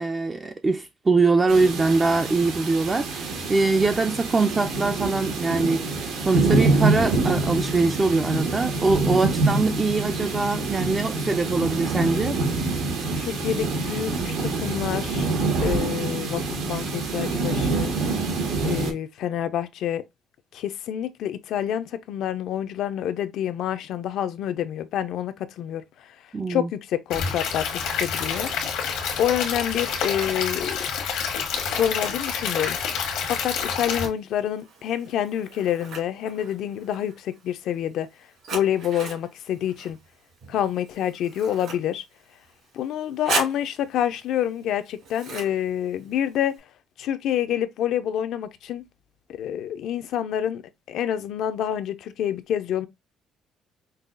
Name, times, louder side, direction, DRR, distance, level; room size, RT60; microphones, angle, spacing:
voice 1, 0.0-12.4 26.3-26.7, right 3 dB, 20° right, 0.3 m, -23 dB
sound 1, 1.5-18.9, right 3 dB, 85° right, 1.3 m, -26 dB
voice 2, 13.2-15.3 15.6-17.9 18.6-20.0 20.5-25.8 26.5-28.5 29.2-30.8 31.7-32.8 33.3-38.1 38.5-40.0 40.5-42.0 42.7-46.6 47.0-48.8 49.3-50.6 50.9-52.9, left 10 dB, 70° left, 0.4 m, -27 dB
Stream / Liquid, 27.1-34.1, left 6 dB, 85° left, 1.1 m, -28 dB
Scissors, 27.8-46.6, right 3 dB, 70° right, 2.5 m, -40 dB
5.3 x 2.3 x 2.4 m
cardioid pair, 135°, 0 cm